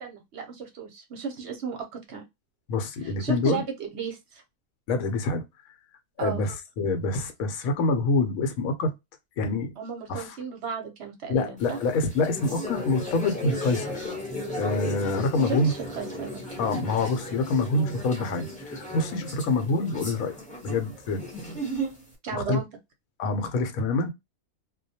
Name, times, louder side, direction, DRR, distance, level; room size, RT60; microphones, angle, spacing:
voice 1, 0.0-2.2 3.0-4.4 6.2-6.4 9.8-11.8 15.4-16.4 22.2-22.7, right 6 dB, 60° right, 0.8 m, -34 dB
voice 2, 2.7-3.6 4.9-5.4 6.2-8.9 9.4-9.7 10.1-10.4 11.3-14.1 14.6-15.7 16.6-20.4 20.6-21.2 22.3-22.6 23.2-24.1, left 3 dB, 85° left, 1.1 m, -26 dB
sound 1, 11.6-22.1, equal, 5° left, 0.6 m, -35 dB
2.3 x 2.1 x 2.6 m
omnidirectional pair, 1.4 m